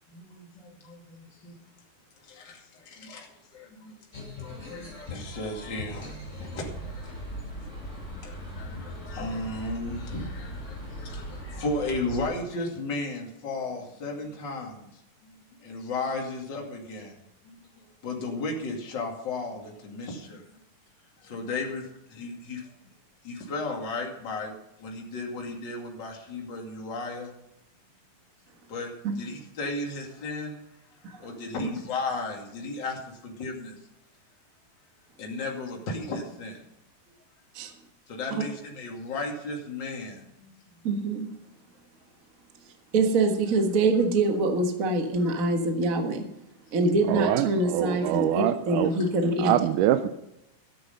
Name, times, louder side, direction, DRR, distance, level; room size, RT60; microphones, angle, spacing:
voice 1, 0.1-1.5 2.2-3.9 4.4-7.1 7.6-7.7 8.1-14.9 15.6-20.4 21.2-22.7 23.2-24.5 24.8-27.3 28.7-30.6 31.2-33.8 35.2-36.6 38.1-40.5 45.2-45.3, left 2 dB, 35° left, 0 dB, 2.8 m, -35 dB
sound 1, 4.1-12.2, equal, 20° left, 6.4 m, -39 dB
voice 2, 40.8-41.3 42.9-46.2 46.7-49.5, right 2 dB, 50° right, 4 dB, 1.0 m, -25 dB
voice 3, 47.1-48.9 49.4-50.1, right 12 dB, 80° right, 10 dB, 2.0 m, -24 dB
13.0 x 10.0 x 5.4 m, 0.85 s
omnidirectional pair, 4.0 m